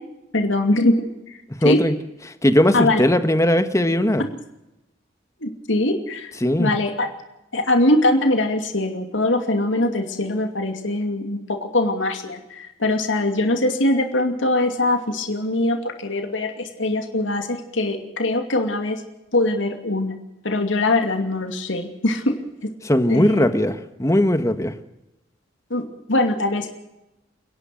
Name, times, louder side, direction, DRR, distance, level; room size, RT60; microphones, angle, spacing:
voice 1, 0.3-0.9 1.6-1.8 2.7-3.0 5.4-6.3 6.6-7.1 7.5-19.0 19.3-20.1 20.4-22.3 23.1-23.5 25.7-26.7, left 2 dB, 90° left, 5 dB, 2.6 m, -22 dB
voice 2, 1.6-1.9 2.4-4.3 6.4-6.7 22.8-24.8, left 1 dB, 15° left, 10 dB, 1.4 m, -19 dB
30.0 x 11.0 x 7.8 m, 0.90 s
head